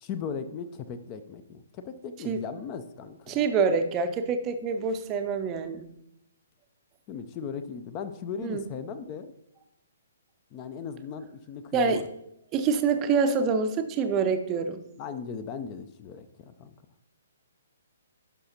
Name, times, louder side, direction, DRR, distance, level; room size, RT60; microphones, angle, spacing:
voice 1, 0.0-3.4 7.1-9.3 10.5-12.1 15.0-16.7, left 6 dB, 25° left, 10 dB, 0.4 m, -38 dB
voice 2, 3.3-5.9 8.4-8.6 11.7-12.0 12.5-14.8, right 5 dB, 20° right, 8 dB, 0.5 m, -26 dB
11.0 x 5.6 x 2.8 m, 0.81 s
figure-of-eight pair, 125°, 0 cm